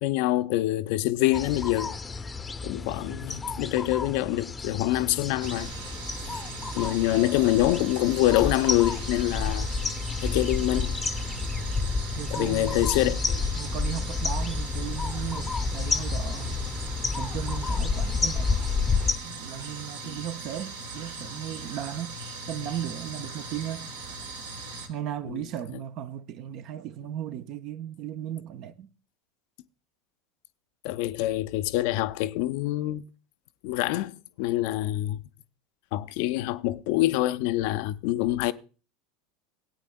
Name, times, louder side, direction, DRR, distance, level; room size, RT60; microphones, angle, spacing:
voice 1, 0.0-1.9 2.6-5.7 6.7-9.7 10.2-11.0 12.3-13.4 20.0-20.1 25.3-25.4 30.8-33.0 33.6-35.2 35.9-38.5, left 15 dB, 55° left, 0.4 m, -25 dB
sound 1, 1.3-19.1, left 4 dB, 20° left, 0.6 m, -30 dB
voice 2, 3.0-3.6 12.2-16.6 17.2-18.6 19.2-22.2 22.5-23.9 24.9-28.9, right 10 dB, 50° right, 0.6 m, -36 dB
sound 2, 5.4-24.9, right 3 dB, 70° right, 1.4 m, -39 dB
18.0 x 8.9 x 2.2 m
figure-of-eight pair, 75°, 0 cm